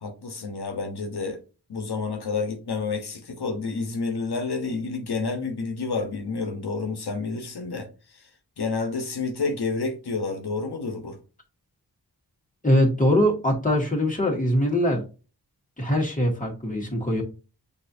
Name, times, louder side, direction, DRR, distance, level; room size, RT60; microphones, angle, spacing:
voice 1, 0.0-1.4 1.7-8.3 8.6-11.2, left 4 dB, 80° left, 1.0 m, -29 dB
voice 2, 12.6-15.1 15.8-17.2, equal, 20° left, 1.8 m, -22 dB
6.5 x 2.8 x 2.6 m
wide cardioid pair, 65°, 38 cm